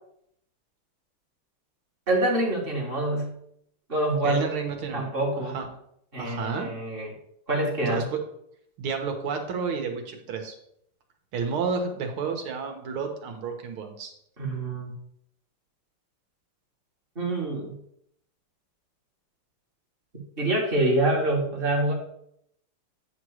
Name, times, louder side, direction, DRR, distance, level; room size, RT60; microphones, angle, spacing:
voice 1, 2.1-3.4 3.9-4.5 4.9-5.6 6.1-7.1 7.5-8.0 14.4-14.9 17.2-17.8 20.4-21.9, right 1 dB, 25° right, -2 dB, 1.7 m, -26 dB
voice 2, 4.2-5.1 5.5-5.7 6.2-6.7 7.9-8.2 8.8-10.6 11.3-14.1, right 5 dB, 75° right, 4 dB, 2.0 m, -31 dB
9.0 x 3.1 x 6.3 m, 0.72 s
omnidirectional pair, 2.4 m